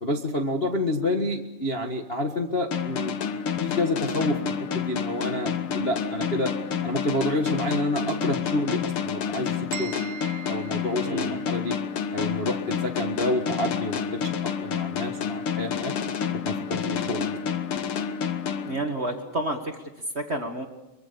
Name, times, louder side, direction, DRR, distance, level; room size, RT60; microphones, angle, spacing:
voice 1, 0.0-3.1 3.6-6.5 6.8-9.9 10.4-11.7 12.1-14.2 14.6-15.9 16.4-17.3, left 1 dB, 45° left, 1 dB, 0.7 m, -28 dB
sound 1, 2.7-19.3, left 7 dB, 60° left, 1.4 m, -29 dB
sound 2, 9.7-11.7, right 10 dB, 65° right, 2.1 m, -41 dB
voice 2, 11.0-11.5 18.7-19.8 20.1-20.7, right 1 dB, 35° right, 4 dB, 1.0 m, -30 dB
24.5 x 23.5 x 7.0 m, 1.0 s
omnidirectional pair, 4.0 m